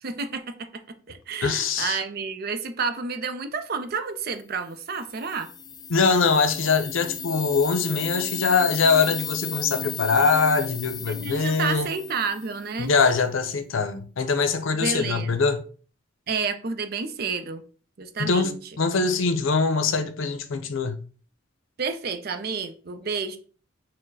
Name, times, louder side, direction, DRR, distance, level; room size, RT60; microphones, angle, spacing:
voice 1, 0.0-0.8 1.1-5.5 11.1-12.9 14.7-15.4 16.3-17.6 18.0-18.6 21.8-23.4, right 5 dB, 50° right, 0.5 m, -30 dB
voice 2, 1.4-2.0 5.9-11.9 12.8-15.6 18.2-21.0, left 4 dB, 80° left, 0.6 m, -23 dB
sound 1, 4.9-12.8, left 7 dB, 20° left, 0.3 m, -35 dB
4.5 x 2.1 x 4.6 m
head